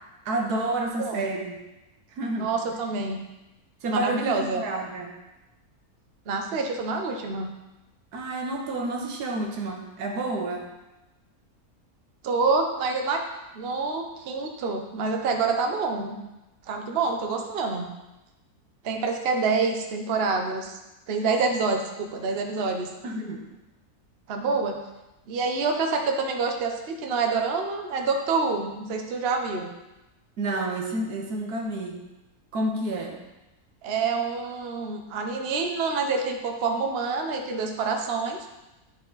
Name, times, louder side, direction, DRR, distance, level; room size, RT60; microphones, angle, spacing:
voice 1, 0.2-1.6 2.2-2.5 3.8-5.1 8.1-10.7 23.0-23.4 30.4-32.0 32.5-33.2, right 2 dB, 85° right, 1 dB, 1.6 m, -29 dB
voice 2, 1.0-1.3 2.4-3.2 3.9-4.6 6.3-7.5 12.2-13.2 13.5-16.2 16.7-17.9 18.8-20.8 21.1-22.9 24.3-24.8 25.3-29.7 33.8-38.5, right 4 dB, 50° right, 3 dB, 0.9 m, -27 dB
10.5 x 4.3 x 4.0 m, 1.0 s
omnidirectional pair, 1.6 m